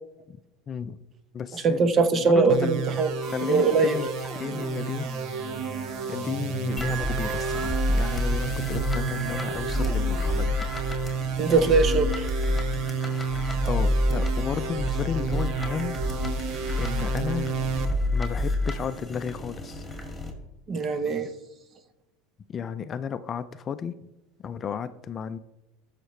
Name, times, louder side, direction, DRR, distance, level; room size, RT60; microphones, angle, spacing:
voice 1, 0.7-1.0 1.3-1.8 2.4-2.9 3.3-4.1 4.3-5.1 6.1-10.6 13.6-16.0 16.8-17.5 18.1-19.8 22.5-24.0 24.4-25.4, left 7 dB, 30° left, 12 dB, 0.4 m, -33 dB
voice 2, 1.5-3.1 3.5-4.0 11.4-12.3 20.7-21.3, right 4 dB, 35° right, 11 dB, 0.9 m, -22 dB
sound 1, 2.5-17.9, right 6 dB, 60° right, 0.9 m, -32 dB
sound 2, 3.2-10.5, equal, 10° right, 1.7 m, -42 dB
sound 3, 6.8-20.3, left 1 dB, 5° left, 2.0 m, -28 dB
13.5 x 5.8 x 3.2 m, 0.94 s
supercardioid pair, 105°, 0 cm